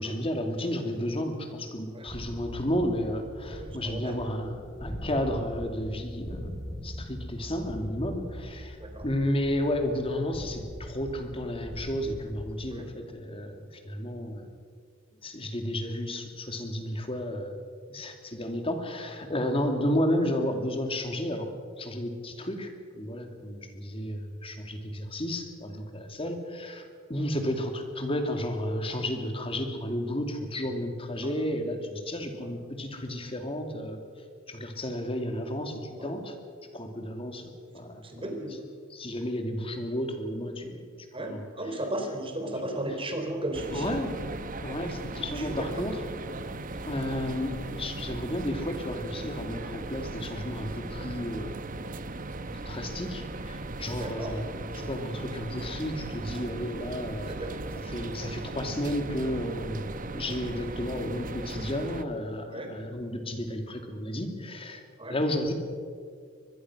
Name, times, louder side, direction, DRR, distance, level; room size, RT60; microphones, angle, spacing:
voice 1, 0.0-6.6 6.8-14.5 15.2-17.6 17.9-34.0 34.5-36.4 36.7-38.3 38.9-40.8 41.2-41.8 42.7-42.8 43.7-44.1 44.6-46.0 46.8-51.6 52.7-54.4 54.7-57.3 57.8-64.8 65.1-65.5, left 1 dB, 30° left, 5 dB, 2.6 m, -32 dB
sound 1, 2.1-12.7, equal, ahead, 7.7 m, -41 dB
voice 2, 3.6-4.1 8.8-9.0 12.7-12.8 31.2-31.3 32.4-32.5 35.9-36.1 37.8-38.6 41.1-43.9 45.4-45.7 54.0-54.4 57.3-57.5 62.5-62.7 65.0-65.2, right 1 dB, 25° right, 4 dB, 3.8 m, -35 dB
sound 2, 43.5-62.1, right 2 dB, 40° right, 1.0 m, -38 dB
24.5 x 21.0 x 6.3 m, 2.1 s
head